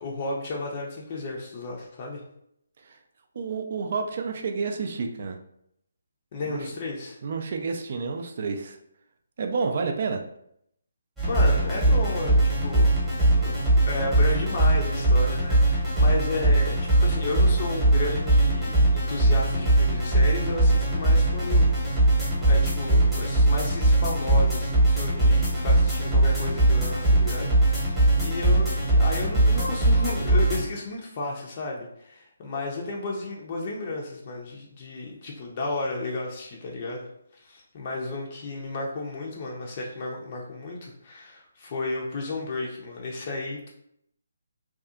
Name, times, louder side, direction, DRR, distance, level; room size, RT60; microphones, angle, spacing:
voice 1, 0.0-2.2 6.3-7.2 11.2-13.0 13.4-13.5 13.9-22.1 22.5-37.1 37.3-43.7, left 2 dB, 35° left, -2 dB, 0.5 m, -33 dB
voice 2, 3.4-5.4 6.5-6.6 7.2-8.8 9.4-10.2, right 4 dB, 45° right, 5 dB, 0.3 m, -29 dB
sound 1, 11.2-30.6, right 1 dB, 5° right, 0.9 m, -21 dB
2.6 x 2.3 x 2.4 m, 0.74 s
figure-of-eight pair, 145°, 0 cm